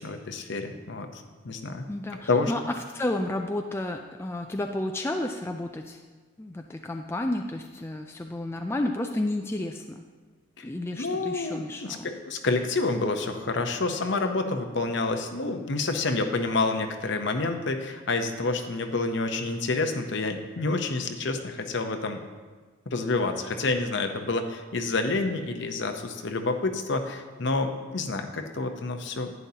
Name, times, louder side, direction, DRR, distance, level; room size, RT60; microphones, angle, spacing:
voice 1, 0.0-1.8 2.3-2.5 10.6-10.7 11.0-22.2 22.9-29.3, left 3 dB, 55° left, 6 dB, 0.8 m, -28 dB
voice 2, 1.9-2.6 2.9-6.0 6.4-10.1 10.6-12.1, left 1 dB, 10° left, 3 dB, 0.3 m, -31 dB
11.0 x 9.4 x 2.8 m, 1.4 s
head